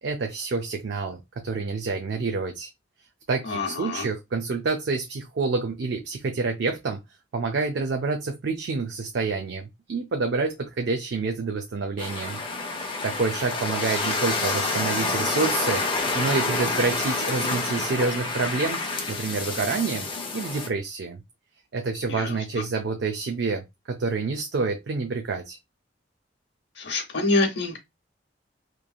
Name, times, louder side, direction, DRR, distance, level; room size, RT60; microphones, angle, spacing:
voice 1, 0.0-2.7 3.3-7.0 7.3-12.4 13.0-18.8 19.1-21.2 21.7-25.6, right 4 dB, 80° right, 0.4 m, -28 dB
voice 2, 3.4-4.1 22.1-22.6 26.8-27.8, left 2 dB, 80° left, 0.8 m, -26 dB
sound 1, 12.0-20.7, left 3 dB, 30° left, 0.6 m, -28 dB
3.0 x 2.5 x 2.3 m
head